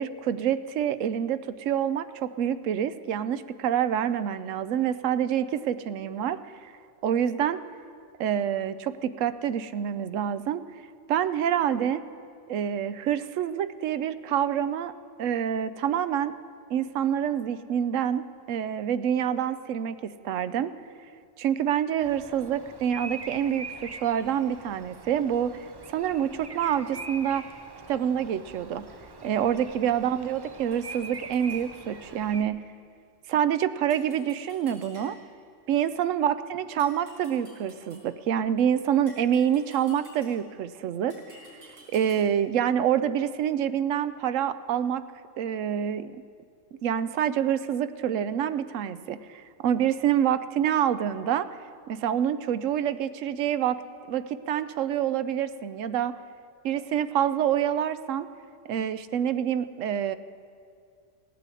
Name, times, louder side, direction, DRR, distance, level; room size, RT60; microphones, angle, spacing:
voice 1, 0.0-6.7 7.0-7.6 8.2-10.6 11.1-12.0 12.5-14.9 15.2-16.3 16.7-20.7 21.4-25.7 25.9-27.5 27.9-28.9 29.2-32.6 33.3-35.2 35.7-41.4 41.9-45.0 45.4-46.1 46.8-51.5 51.9-53.8 54.1-56.2 56.6-58.3 58.7-60.2, right 9 dB, 85° right, 14 dB, 1.0 m, -27 dB
Bird vocalization bird call bird song, 22.0-32.4, right 3 dB, 30° right, 0.5 m, -43 dB
sound 1, 30.7-31.7 33.9-35.4 36.8-38.2 39.1-40.6 41.1-42.5, left 1 dB, 65° right, 5.0 m, -52 dB
16.5 x 9.0 x 8.3 m, 2.3 s
omnidirectional pair, 1.3 m